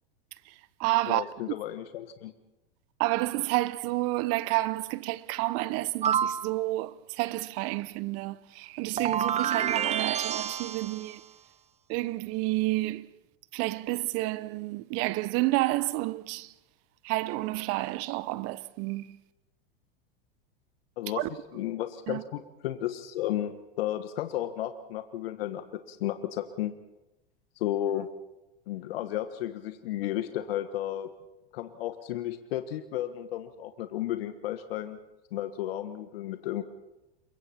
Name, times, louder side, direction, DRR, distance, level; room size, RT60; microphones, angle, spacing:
voice 1, 0.5-1.3 3.0-11.2 11.9-13.1 13.5-16.5 17.0-19.2 21.2-21.3 22.1-22.2, right 19 dB, 50° right, 1.0 m, -30 dB
voice 2, 1.1-2.3 21.0-21.2 21.5-25.6 25.9-26.7 27.6-28.1 28.7-31.1 31.5-35.0 35.3-36.6, left 12 dB, 70° left, 1.5 m, -33 dB
sound 1, 6.0-6.5 9.0-11.1, right 9 dB, 20° right, 0.7 m, -28 dB
27.5 x 23.5 x 4.4 m
hypercardioid pair, 100°, 30 cm